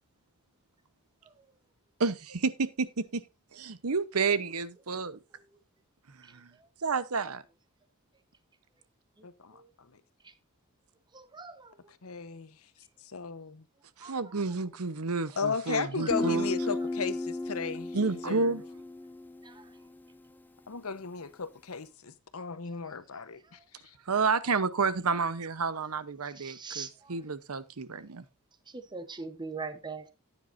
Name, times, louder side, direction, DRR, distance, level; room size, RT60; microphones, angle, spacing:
voice 1, 2.0-3.2 3.5-5.2 6.3-6.5 6.8-7.4 14.0-16.5 17.9-18.6 24.1-28.2, right 4 dB, 80° right, 0.9 m, -30 dB
voice 2, 9.2-9.6 12.0-12.5 13.0-13.6 15.4-18.0 18.2-18.5 20.7-23.6, left 5 dB, 75° left, 1.0 m, -35 dB
voice 3, 11.1-11.8 14.0-14.5 16.0-16.1 19.4-19.7 26.4-27.1 28.7-30.1, right 4 dB, 20° right, 0.9 m, -42 dB
Guitar, 16.1-19.7, left 2 dB, 10° left, 0.4 m, -34 dB
14.5 x 9.3 x 2.6 m
head